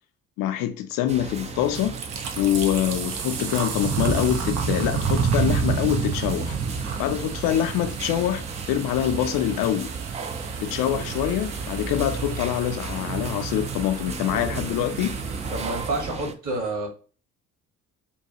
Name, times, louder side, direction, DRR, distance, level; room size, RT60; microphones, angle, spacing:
voice 1, 0.4-2.0 2.4-6.6 7.0-9.9 10.6-15.2, left 11 dB, 55° left, 0.5 m, -25 dB
sound 1, 1.1-16.3, right 5 dB, 20° right, 0.3 m, -30 dB
sound 2, 1.6-15.9, right 6 dB, 60° right, 0.8 m, -37 dB
voice 2, 15.5-16.9, right 2 dB, 45° right, 1.7 m, -28 dB
3.7 x 2.3 x 2.8 m
figure-of-eight pair, 50°, 42 cm